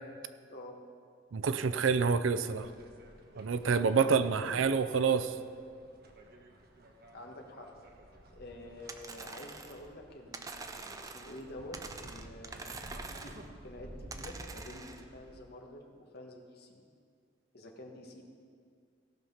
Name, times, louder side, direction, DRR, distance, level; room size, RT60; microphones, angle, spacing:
voice 1, 1.3-2.7 3.4-5.3, right 5 dB, 85° right, 12 dB, 0.5 m, -27 dB
sound 1, 2.4-15.4, right 1 dB, 55° right, 1.1 m, -53 dB
voice 2, 4.0-5.1 7.1-7.7 8.3-12.6 13.1-13.4 13.6-16.8 17.5-18.2, left 1 dB, 55° left, 1 dB, 1.4 m, -48 dB
sound 2, 8.9-9.9 10.3-11.4 11.7-13.5 14.1-15.0, right 3 dB, 20° right, 0.5 m, -45 dB
17.0 x 5.8 x 5.6 m, 2.2 s
head